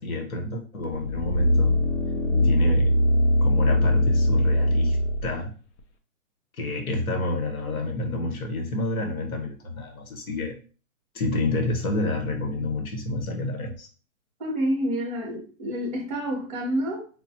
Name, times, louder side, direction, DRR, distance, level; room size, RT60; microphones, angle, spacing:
voice 1, 0.0-1.7 2.4-2.9 3.4-5.5 6.6-10.6 11.1-13.9, left 2 dB, 90° left, 3 dB, 1.3 m, -29 dB
sound 1, 0.9-5.3 5.8-5.9, left 1 dB, 55° left, 0.7 m, -21 dB
voice 2, 14.4-17.1, equal, 5° left, -6 dB, 0.7 m, -28 dB
4.8 x 2.3 x 2.8 m, 0.37 s
hypercardioid pair, 160°, 41 cm